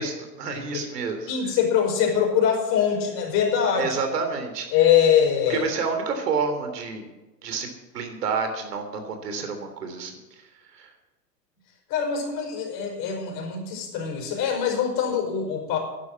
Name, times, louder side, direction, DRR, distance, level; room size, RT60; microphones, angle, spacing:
voice 1, 0.0-1.3 3.8-4.7 5.5-7.1 7.4-7.7 7.9-10.4 10.7-10.9, right 5 dB, 70° right, 6 dB, 3.4 m, -29 dB
voice 2, 1.3-4.0 4.7-5.7 11.9-15.8, left 8 dB, 40° left, 1 dB, 5.2 m, -23 dB
11.5 x 11.0 x 7.4 m, 1.1 s
hypercardioid pair, 110°, 49 cm